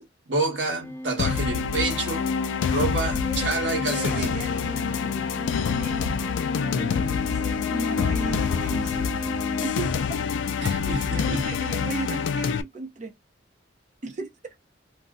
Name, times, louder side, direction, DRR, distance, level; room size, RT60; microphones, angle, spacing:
voice 1, 0.3-2.3 2.6-4.4 10.6-11.5, right 3 dB, 70° right, 1.2 m, -28 dB
sound 1, 0.8-9.7, equal, 10° left, 0.4 m, -35 dB
sound 2, 1.2-12.6, left 6 dB, 80° left, 0.3 m, -26 dB
voice 2, 3.1-3.5 3.8-4.8 5.8-9.2 9.6-10.0 10.8-13.1 14.0-14.6, right 3 dB, 40° right, 0.6 m, -36 dB
sound 3, 4.5-10.1, left 1 dB, 50° left, 0.7 m, -47 dB
2.6 x 2.1 x 3.6 m
head